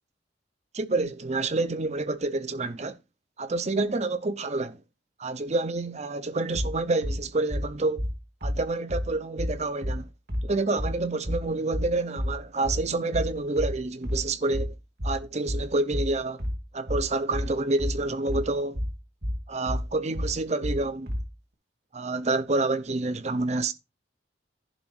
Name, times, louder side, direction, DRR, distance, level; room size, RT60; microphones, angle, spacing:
voice 1, 0.7-3.0 3.4-4.8 5.2-8.1 8.4-10.1 10.4-14.7 15.0-16.4 16.7-18.8 19.5-21.1 21.9-23.7, right 2 dB, 35° right, 0.7 m, -28 dB
sound 1, 6.5-21.3, equal, 55° right, 2.3 m, -30 dB
11.0 x 3.8 x 6.0 m
head